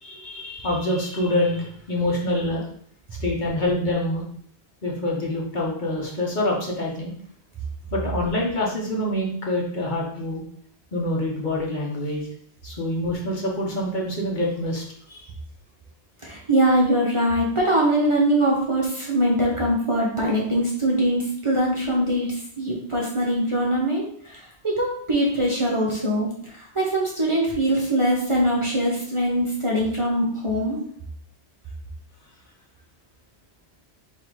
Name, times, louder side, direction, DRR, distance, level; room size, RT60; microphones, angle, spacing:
voice 1, 0.0-2.7 3.2-4.2 4.8-7.1 7.9-10.4 10.9-12.3 12.6-15.3, left 1 dB, 45° left, -2 dB, 1.0 m, -26 dB
voice 2, 16.2-30.8, right 1 dB, 30° right, -3 dB, 0.8 m, -22 dB
3.8 x 2.7 x 4.6 m, 0.62 s
omnidirectional pair, 1.1 m